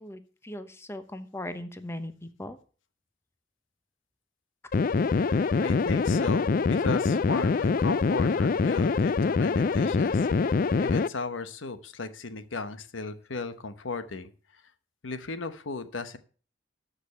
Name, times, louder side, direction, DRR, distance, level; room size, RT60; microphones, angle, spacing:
voice 1, 0.0-2.6, left 1 dB, 15° left, 9 dB, 0.9 m, -39 dB
sound 1, 4.7-11.1, left 4 dB, 45° left, 0.4 m, -24 dB
voice 2, 5.2-14.6 15.0-16.2, left 3 dB, 85° left, 11 dB, 1.0 m, -36 dB
13.0 x 5.3 x 6.7 m, 0.39 s
head